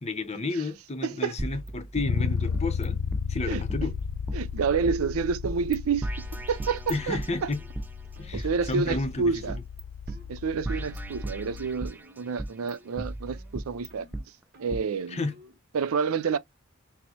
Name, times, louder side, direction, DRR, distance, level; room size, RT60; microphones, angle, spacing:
voice 1, 0.0-3.0 3.3-3.9 6.9-7.6 8.2-9.6 15.1-15.4, left 3 dB, 30° left, 0.7 m, -32 dB
voice 2, 1.0-1.3 3.4-3.6 4.3-6.1 6.5-7.5 8.3-9.6 10.3-14.1 14.6-15.2 15.7-16.4, right 5 dB, 85° right, 0.5 m, -28 dB
sound 1, 1.4-2.9 3.1-3.2 3.7-5.0 5.4-5.8 6.0-7.9 8.3-9.8 10.1-10.2 10.6-12.0 12.4-14.2 14.7-14.8, right 1 dB, 10° right, 0.3 m, -36 dB
Bass guitar, 2.1-11.9, left 6 dB, 85° left, 0.5 m, -34 dB
sound 2, 5.6-5.8 6.2-6.5 6.9-7.1 7.5-7.7 8.2-8.4 8.8-9.1 9.4-9.7 10.1-10.3 10.7-11.1 11.3-11.7 12.0-12.4 12.6-13.0 13.3-15.6, right 1 dB, 50° right, 0.9 m, -55 dB
4.4 x 2.0 x 2.8 m
head